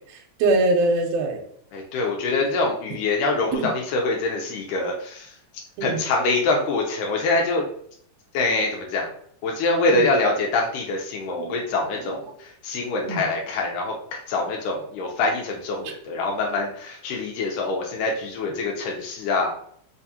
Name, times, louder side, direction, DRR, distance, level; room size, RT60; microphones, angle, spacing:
voice 1, 0.1-1.4 3.5-3.7 5.8-6.0 9.9-10.0 11.4-11.5 13.0-13.2 15.8-15.9, right 2 dB, 80° right, 2 dB, 1.8 m, -23 dB
voice 2, 1.7-5.3 5.8-7.7 8.3-9.1 9.4-19.5, left 3 dB, 80° left, 0 dB, 2.0 m, -25 dB
4.8 x 2.3 x 2.7 m, 0.64 s
omnidirectional pair, 3.6 m